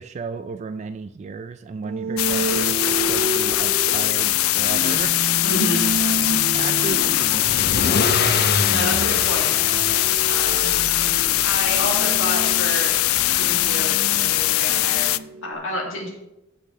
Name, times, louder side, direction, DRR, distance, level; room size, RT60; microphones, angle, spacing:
voice 1, 0.0-5.1 6.5-7.6, right 5 dB, 35° right, 10 dB, 0.3 m, -34 dB
sound 1, 1.8-15.5, right 3 dB, 80° right, 0.9 m, -31 dB
sound 2, 2.2-15.2, left 16 dB, 90° left, 0.4 m, -21 dB
voice 2, 5.4-5.8 8.1-9.5 10.3-10.8 11.4-13.0 13.2-15.1 15.4-16.1, left 1 dB, 70° left, -2 dB, 2.3 m, -29 dB
Car / Engine starting / Accelerating revving vroom, 6.6-13.7, left 4 dB, 50° left, 0.7 m, -28 dB
15.0 x 5.8 x 3.7 m, 0.89 s
head